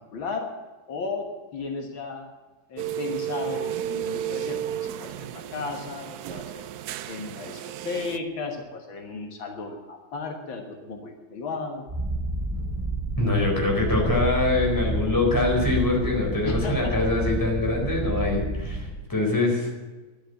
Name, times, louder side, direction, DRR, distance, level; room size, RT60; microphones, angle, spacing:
voice 1, 0.1-0.5 0.9-2.3 2.7-6.7 7.1-11.9 16.4-17.0, left 4 dB, 75° left, 3 dB, 2.3 m, -34 dB
sound 1, 2.8-8.2, right 10 dB, 75° right, 0.9 m, -33 dB
Purr, 11.9-18.9, right 1 dB, 30° right, 6.4 m, -29 dB
voice 2, 13.2-19.7, left 2 dB, 10° left, -1 dB, 4.3 m, -24 dB
11.5 x 11.0 x 8.4 m, 1.2 s
omnidirectional pair, 2.2 m